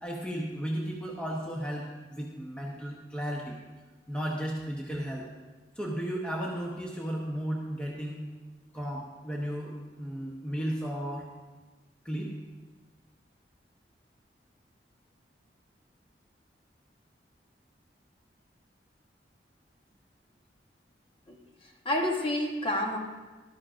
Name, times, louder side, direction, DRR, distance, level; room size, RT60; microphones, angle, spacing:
voice 1, 0.0-3.6 4.1-5.3 5.8-8.2 8.7-11.3 12.0-12.3, equal, 5° left, -2 dB, 0.8 m, -34 dB
voice 2, 21.3-23.0, left 1 dB, 30° left, 1 dB, 1.0 m, -30 dB
12.5 x 12.0 x 2.5 m, 1.3 s
head